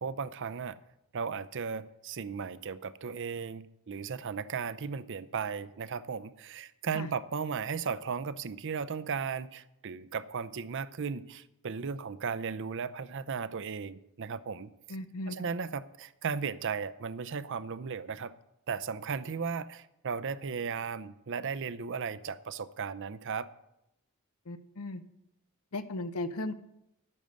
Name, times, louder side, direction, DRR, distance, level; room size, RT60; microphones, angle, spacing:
voice 1, 0.0-0.8 1.1-14.7 15.3-18.3 18.7-23.5, right 5 dB, 55° right, 0.5 m, -36 dB
voice 2, 14.9-15.4 24.5-25.0 25.7-26.5, left 2 dB, 70° left, 0.7 m, -36 dB
10.5 x 8.9 x 6.4 m
head